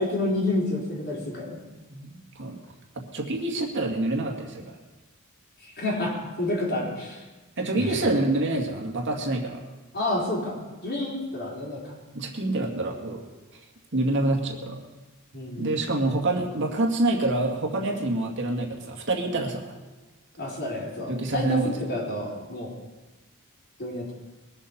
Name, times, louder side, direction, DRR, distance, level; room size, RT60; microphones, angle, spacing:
voice 1, 0.0-1.6 5.8-7.2 7.7-8.0 9.9-11.9 15.3-15.7 20.4-22.7 23.8-24.1, left 1 dB, 50° left, -2 dB, 3.9 m, -29 dB
voice 2, 1.9-2.6 3.1-4.8 7.6-9.6 12.1-13.2 13.9-14.8 15.6-19.7 21.1-21.7, right 2 dB, 55° right, 1 dB, 2.1 m, -26 dB
21.5 x 7.3 x 6.9 m, 1.2 s
head